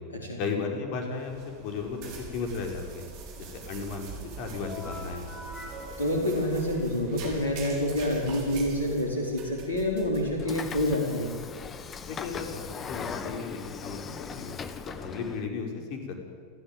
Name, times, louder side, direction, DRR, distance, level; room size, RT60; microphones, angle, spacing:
voice 1, 0.4-3.1 3.4-4.1 4.4-5.2 12.1-14.5 14.8-16.2, left 4 dB, 45° left, 3 dB, 5.4 m, -35 dB
sound 1, 1.1-11.1, right 4 dB, 45° right, 5.9 m, -43 dB
sound 2, 4.6-8.2, left 2 dB, 5° left, 5.8 m, -46 dB
voice 2, 6.0-11.3, left 1 dB, 75° left, 0 dB, 4.8 m, -27 dB
Train / Sliding door, 10.4-15.4, left 6 dB, 25° left, 1.7 m, -39 dB
29.5 x 14.5 x 9.3 m, 2.1 s
figure-of-eight pair, 85°, 0 cm